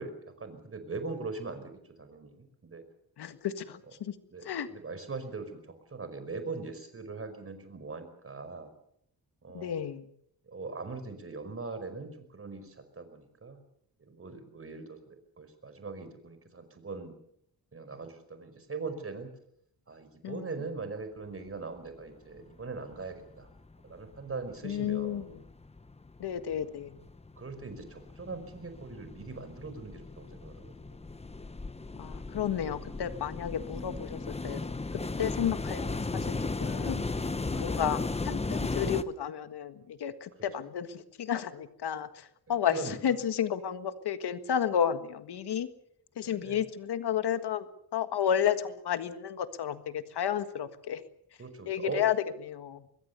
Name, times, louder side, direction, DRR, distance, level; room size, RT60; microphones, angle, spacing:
voice 1, 0.0-1.7 2.0-2.8 4.3-8.7 9.4-9.8 10.4-13.6 14.1-17.1 17.7-19.3 19.9-23.5 23.8-25.3 26.5-26.7 27.4-31.1 37.5-37.8 42.7-43.1 46.2-46.6 51.4-52.0, right 3 dB, 35° right, 9 dB, 5.1 m, -41 dB
voice 2, 3.2-4.1 4.4-4.7 9.5-10.1 20.2-20.5 24.6-25.4 26.2-27.0 32.0-34.6 34.9-37.1 37.6-45.7 46.1-51.0 51.6-52.2 52.4-52.8, left 9 dB, 85° left, 10 dB, 1.7 m, -32 dB
sound 1, 22.4-22.5 22.7-23.7 24.1-39.0, left 3 dB, 15° left, 1.0 m, -36 dB
24.5 x 21.5 x 6.9 m, 0.71 s
wide cardioid pair, 125°, 39 cm